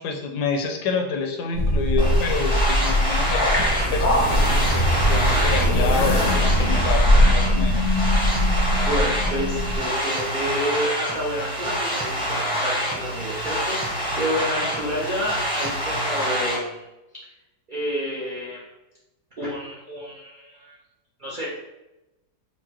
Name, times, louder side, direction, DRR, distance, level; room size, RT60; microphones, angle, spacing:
voice 1, 0.0-3.5 3.9-7.8 14.6-14.9, left 5 dB, 75° left, 4 dB, 1.1 m, -28 dB
sound 1, 1.5-9.8, equal, 55° left, 0.5 m, -20 dB
sound 2, 2.0-16.6, equal, 5° right, 0.6 m, -26 dB
voice 2, 8.8-16.8 17.7-18.7 19.4-20.8 21.2-21.5, equal, 75° right, -6 dB, 0.4 m, -29 dB
4.7 x 2.2 x 2.8 m, 0.97 s
omnidirectional pair, 1.8 m